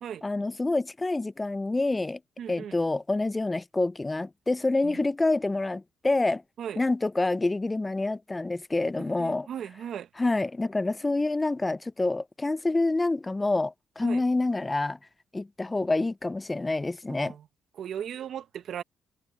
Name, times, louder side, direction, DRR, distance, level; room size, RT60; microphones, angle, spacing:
voice 1, 0.2-2.2 2.5-6.4 6.8-9.5 10.2-15.0 15.3-17.3, left 2 dB, 20° left, 0.3 m, -27 dB
voice 2, 2.4-2.8 4.8-5.0 6.6-6.8 9.0-10.1 14.0-14.2 17.1-17.4 17.8-18.8, right 9 dB, 65° right, 0.9 m, -37 dB
cardioid pair, 90°, 0 cm